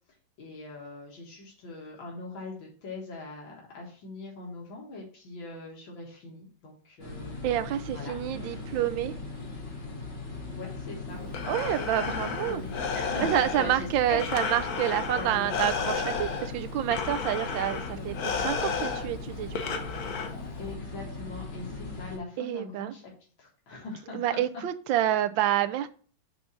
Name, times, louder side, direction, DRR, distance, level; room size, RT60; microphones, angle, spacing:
voice 1, 0.4-7.3 7.9-8.1 10.5-11.2 11.8-14.2 15.1-15.7 17.7-18.2 20.6-23.0 23.4-24.4, left 3 dB, 80° left, -2 dB, 2.5 m, -41 dB
sound 1, 7.0-22.2, left 3 dB, 35° left, 2.1 m, -39 dB
voice 2, 7.4-9.2 11.5-12.6 13.2-19.8 22.4-22.9 24.1-25.9, right 12 dB, 80° right, 10 dB, 1.4 m, -28 dB
Breathing, 11.1-20.7, left 5 dB, 60° left, 1.2 m, -33 dB
6.4 x 3.8 x 5.9 m, 0.42 s
omnidirectional pair, 2.1 m